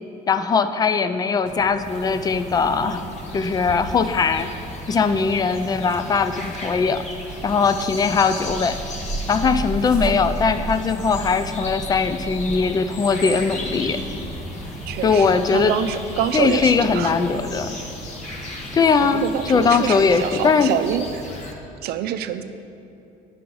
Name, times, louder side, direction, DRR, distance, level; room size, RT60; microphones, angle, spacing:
voice 1, 0.3-3.0 3.3-4.5 4.9-7.1 7.4-8.8 9.3-14.0 15.0-15.7 16.3-17.8 18.7-20.7, left 5 dB, 25° left, 11 dB, 0.4 m, -20 dB
Sunny day in Prospect Park Brooklyn New York, 1.4-20.2, right 2 dB, 5° right, 0.8 m, -36 dB
amb - outdoor birds crows, 1.8-21.5, left 1 dB, 45° left, 1.3 m, -36 dB
voice 2, 14.9-17.1 19.0-21.3 21.8-22.4, right 10 dB, 70° right, 10 dB, 0.5 m, -26 dB
10.0 x 5.8 x 3.8 m, 2.8 s
cardioid pair, 110°, 17 cm